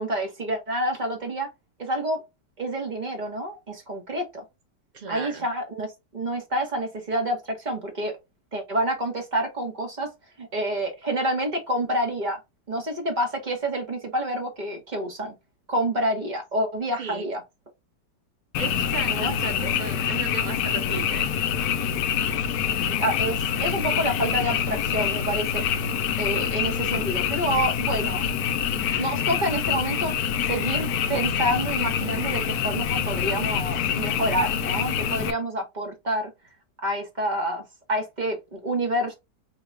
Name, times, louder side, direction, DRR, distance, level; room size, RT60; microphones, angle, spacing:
voice 1, 0.0-1.5 1.8-2.2 2.6-4.4 5.1-8.2 8.5-10.1 10.4-12.4 12.7-15.3 15.7-17.4 19.1-19.4 23.0-25.6 26.2-28.3 29.0-30.1 30.5-36.3 36.8-37.6 37.9-39.1, right 1 dB, 30° right, 1.0 m, -28 dB
voice 2, 4.9-5.5 17.0-17.3 18.6-21.3, right 5 dB, 70° right, 0.4 m, -36 dB
Frog, 18.5-35.3, left 8 dB, 70° left, 0.9 m, -26 dB
4.8 x 2.3 x 3.2 m
omnidirectional pair, 1.9 m